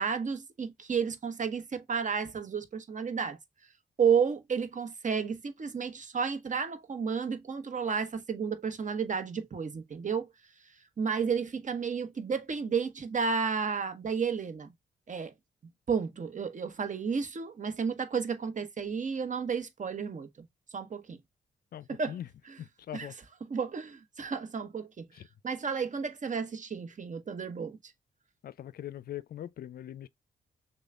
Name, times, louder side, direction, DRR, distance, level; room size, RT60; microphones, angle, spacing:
voice 1, 0.0-3.4 4.0-10.3 11.0-14.7 15.1-15.3 15.9-20.3 20.7-21.2 21.9-22.2 22.9-23.1 23.5-25.1 25.4-27.8, right 6 dB, 45° right, 1.0 m, -32 dB
voice 2, 21.7-22.3 22.6-23.2 25.1-25.3 28.4-30.1, left 11 dB, 60° left, 0.4 m, -41 dB
6.4 x 2.3 x 2.4 m
supercardioid pair, 50°, 17 cm